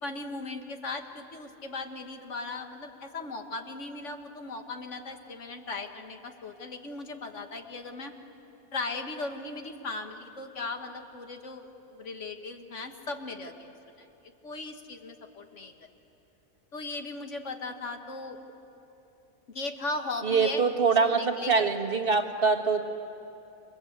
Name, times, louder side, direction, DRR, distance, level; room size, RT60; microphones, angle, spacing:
voice 1, 0.0-8.1 8.7-13.7 14.0-14.1 14.4-15.7 16.7-18.4 19.5-21.7, left 3 dB, 60° left, 5 dB, 1.9 m, -37 dB
voice 2, 20.2-22.8, right 4 dB, 45° right, 4 dB, 1.8 m, -24 dB
29.5 x 24.0 x 8.2 m, 3.0 s
omnidirectional pair, 1.4 m